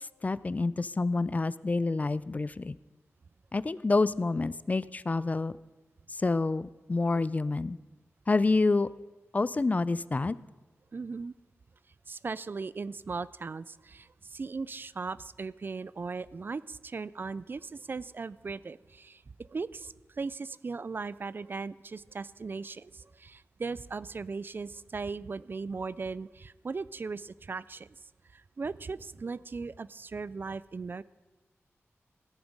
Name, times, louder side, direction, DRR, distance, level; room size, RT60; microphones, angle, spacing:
voice 1, 0.2-2.7 3.5-5.5 6.2-7.8 8.3-8.9 9.3-10.4, left 3 dB, 30° left, 18 dB, 0.3 m, -28 dB
voice 2, 10.9-11.3 12.1-27.9 28.3-31.0, right 4 dB, 45° right, 19 dB, 0.3 m, -38 dB
14.5 x 10.5 x 5.2 m, 1.3 s
wide cardioid pair, 100°, 5 cm